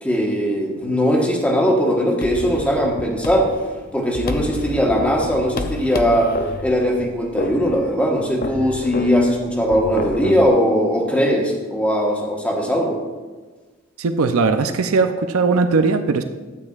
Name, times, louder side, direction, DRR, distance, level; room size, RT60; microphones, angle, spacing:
voice 1, 0.0-3.5 3.9-6.3 6.6-13.0, equal, 5° left, -1 dB, 1.2 m, -19 dB
sound 1, 2.2-10.5, left 2 dB, 45° left, 0.6 m, -30 dB
voice 2, 14.0-16.2, right 4 dB, 90° right, 8 dB, 0.5 m, -19 dB
12.0 x 8.5 x 2.4 m, 1.3 s
head